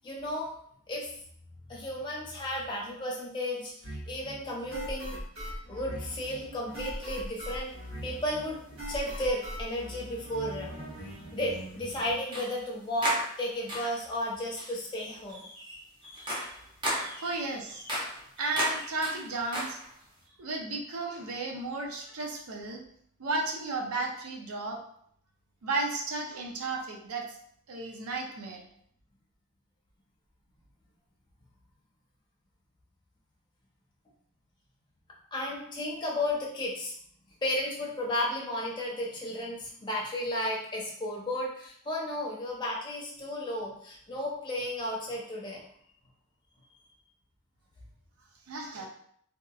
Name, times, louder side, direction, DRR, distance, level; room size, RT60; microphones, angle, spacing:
voice 1, 0.0-0.5 0.9-1.1 1.7-5.2 5.5-8.6 8.9-10.7 11.3-15.4 16.2-16.5 17.2-17.5 22.0-22.2 35.3-36.9 37.4-45.6, left 1 dB, 20° left, -3 dB, 0.6 m, -34 dB
sound 1, 3.8-12.1, equal, 65° right, 1.2 m, -41 dB
sound 2, 7.0-7.1 8.7-8.9 9.9-10.0 12.3-12.7 13.0-14.1 14.6-14.8 15.3-20.1, equal, 20° right, 0.6 m, -35 dB
voice 2, 17.2-17.8 18.4-19.8 20.4-22.8 23.2-24.8 25.6-27.2 27.7-28.6 48.5-48.9, right 3 dB, 85° right, 1 dB, 0.5 m, -33 dB
2.8 x 2.3 x 2.3 m, 0.66 s
head